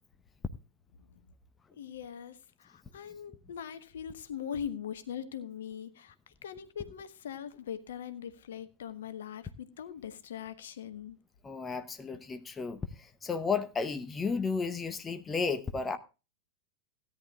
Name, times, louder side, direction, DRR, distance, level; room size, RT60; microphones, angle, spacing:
voice 1, 1.8-11.2, left 8 dB, 60° left, 1.2 m, -41 dB
voice 2, 11.4-12.8 13.2-16.0, left 5 dB, 15° left, 1.0 m, -33 dB
17.0 x 10.5 x 2.4 m
figure-of-eight pair, 90°, 0 cm